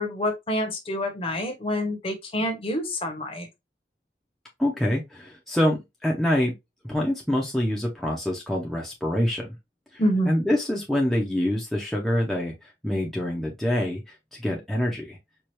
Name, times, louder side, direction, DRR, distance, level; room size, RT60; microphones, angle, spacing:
voice 1, 0.0-3.5 10.0-10.3, equal, 30° left, 0.9 m, -27 dB
voice 2, 4.6-6.5 6.9-9.5 9.9-15.2, left 1 dB, ahead, 0.6 m, -26 dB
4.5 x 2.3 x 3.0 m
head